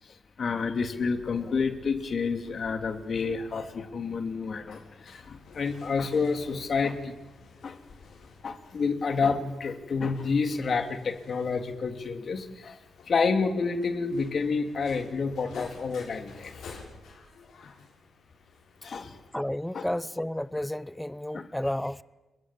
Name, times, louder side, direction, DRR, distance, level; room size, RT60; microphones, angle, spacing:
voice 1, 0.4-7.1 7.6-7.8 8.4-12.8 13.1-16.8 17.6-17.7 18.8-19.2 19.7-19.8 21.3-21.5, left 4 dB, 55° left, 3.0 m, -29 dB
sound 1, 1.0-19.4, left 4 dB, 85° left, 7.8 m, -52 dB
voice 2, 19.3-22.0, left 1 dB, 5° left, 0.8 m, -31 dB
30.0 x 22.0 x 7.6 m
cardioid pair, 90°, 0 cm